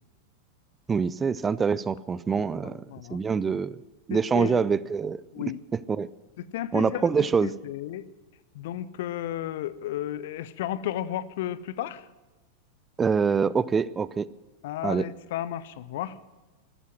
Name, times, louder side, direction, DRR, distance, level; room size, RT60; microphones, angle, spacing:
voice 1, 0.9-2.8 3.1-3.8 4.1-5.4 5.9-6.1 6.7-7.5 13.0-14.3 14.8-15.0, right 5 dB, 20° right, 19 dB, 0.4 m, -25 dB
voice 2, 2.3-3.2 4.1-4.7 5.3-5.6 6.4-8.0 8.5-12.1 14.6-16.2, left 12 dB, 55° left, 17 dB, 0.7 m, -33 dB
14.0 x 12.0 x 7.7 m, 1.1 s
figure-of-eight pair, 90°, 0 cm